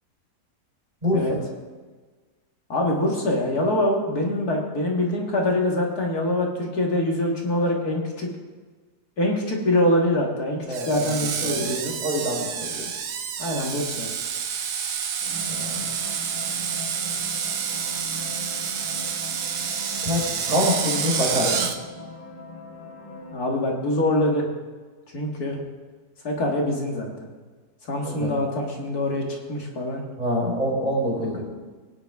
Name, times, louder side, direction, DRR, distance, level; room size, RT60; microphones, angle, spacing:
voice 1, 2.7-8.3 9.2-11.9 13.4-14.1 23.3-24.5 25.1-25.6 26.2-27.1 27.9-30.0, left 1 dB, 65° left, 0 dB, 2.3 m, -24 dB
voice 2, 10.7-11.1 11.4-11.7 12.0-12.8 15.5-15.8 20.0-21.7 28.0-28.4 30.2-31.4, left 1 dB, 25° right, -4 dB, 4.3 m, -26 dB
Screech, 10.7-21.8, right 7 dB, 75° right, 1.4 m, -29 dB
sound 1, 15.2-23.4, left 2 dB, 50° left, 2.6 m, -40 dB
19.0 x 10.0 x 3.6 m, 1.4 s
omnidirectional pair, 1.7 m